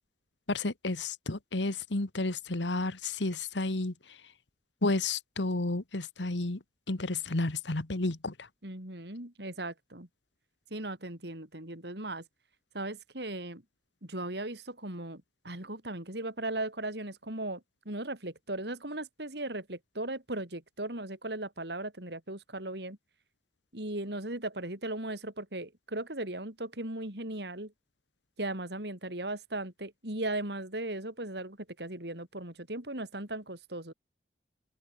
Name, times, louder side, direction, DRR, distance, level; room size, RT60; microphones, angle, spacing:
voice 1, 0.5-3.9 4.8-6.6 6.9-8.3, left 2 dB, 85° left, 1.6 m, -31 dB
voice 2, 8.6-10.1 10.7-12.2 12.7-13.6 14.0-23.0 23.7-27.7 28.4-33.9, right 1 dB, 65° right, 5.1 m, -37 dB
open air
head